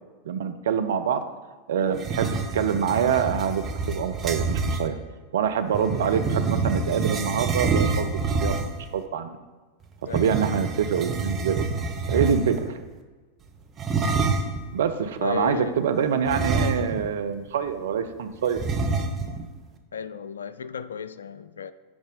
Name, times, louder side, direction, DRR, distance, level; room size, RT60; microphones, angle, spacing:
voice 1, 0.3-1.2 1.7-4.9 5.3-9.3 10.1-11.7 12.1-12.8 14.7-18.6, right 7 dB, 60° right, 0.6 m, -25 dB
sound 1, 1.9-4.9 5.7-8.9 10.1-12.7 13.8-14.6 16.3-17.2 17.5-17.6 18.6-19.4, right 4 dB, 25° right, 0.8 m, -27 dB
voice 2, 15.2-15.8 19.9-21.7, left 7 dB, 70° left, 0.3 m, -34 dB
6.1 x 5.1 x 5.3 m
figure-of-eight pair, 90°, 0 cm